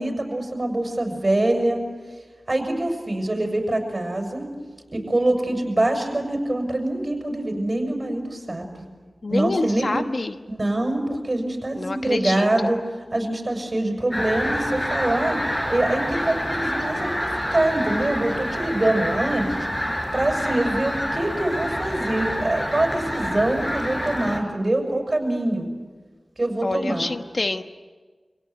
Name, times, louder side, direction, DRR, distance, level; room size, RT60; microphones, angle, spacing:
voice 1, 0.0-1.8 2.5-4.5 4.9-8.8 9.3-10.0 10.5-12.8 13.1-15.4 15.7-19.5 20.1-25.7 26.4-27.1, right 1 dB, 40° right, 3 dB, 6.8 m, -24 dB
voice 2, 9.2-10.4 11.8-12.5 26.6-27.6, left 2 dB, 60° left, 8 dB, 1.2 m, -26 dB
sound 1, 14.1-24.4, equal, 20° left, 4.4 m, -27 dB
27.0 x 17.5 x 9.5 m, 1.4 s
wide cardioid pair, 55°, 0 cm